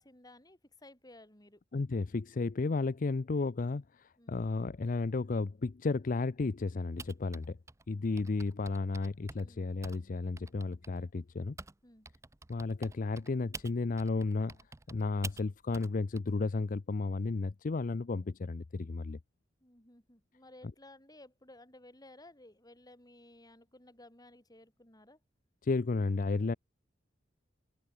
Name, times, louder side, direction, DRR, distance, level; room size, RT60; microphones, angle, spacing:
voice 1, 0.0-1.6 4.2-4.4 8.0-8.1 9.4-9.7 11.8-12.1 19.6-25.2, left 1 dB, 20° left, 7.2 m, -56 dB
voice 2, 1.7-7.6 7.9-11.6 12.5-14.6 14.9-19.2 25.6-26.5, left 3 dB, 45° left, 0.5 m, -33 dB
Typing, 7.0-11.8 12.0-16.2, right 3 dB, 15° right, 0.6 m, -48 dB
head